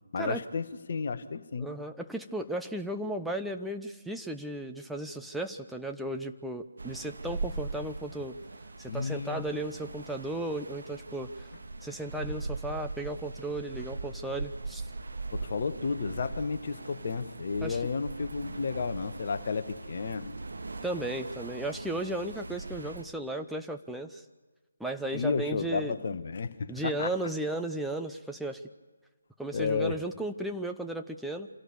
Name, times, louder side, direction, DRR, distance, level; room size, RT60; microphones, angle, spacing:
voice 1, 0.1-1.7 8.9-9.4 15.3-20.4 25.1-27.1 29.5-30.0, left 5 dB, 40° left, 11 dB, 1.2 m, -32 dB
voice 2, 1.6-8.4 8.8-11.5 11.8-14.9 17.6-17.8 20.8-24.2 24.8-25.9 26.7-28.6 29.4-31.5, right 1 dB, ahead, 3 dB, 0.6 m, -35 dB
sound 1, 6.8-23.0, right 3 dB, 60° right, 1.8 m, -40 dB
26.5 x 17.0 x 6.9 m, 1.3 s
figure-of-eight pair, 145°, 0 cm